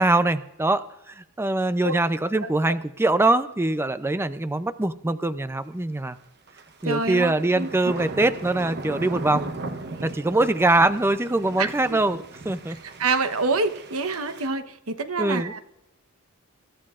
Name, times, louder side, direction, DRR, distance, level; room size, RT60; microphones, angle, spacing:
voice 1, 0.0-6.2 6.8-9.5 10.0-12.8 15.2-15.5, right 2 dB, 10° right, 12 dB, 0.4 m, -23 dB
voice 2, 2.4-2.7 6.8-7.7 11.6-12.0 13.0-15.6, right 3 dB, 90° right, 9 dB, 1.0 m, -27 dB
sound 1, 6.5-14.5, right 2 dB, 50° right, 1.0 m, -37 dB
25.0 x 13.5 x 2.5 m, 0.89 s
head